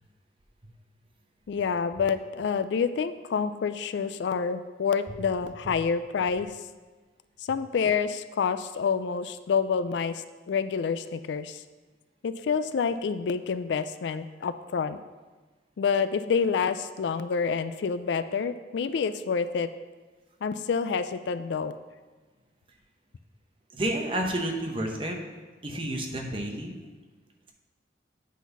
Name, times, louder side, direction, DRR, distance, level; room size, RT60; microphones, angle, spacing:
voice 1, 1.5-6.5 7.4-11.6 12.2-15.0 15.8-19.7 20.4-21.7, left 6 dB, 75° left, 12 dB, 0.3 m, -28 dB
voice 2, 23.7-25.2 25.6-26.7, right 1 dB, 30° right, 2 dB, 0.8 m, -30 dB
8.3 x 4.1 x 5.4 m, 1.3 s
head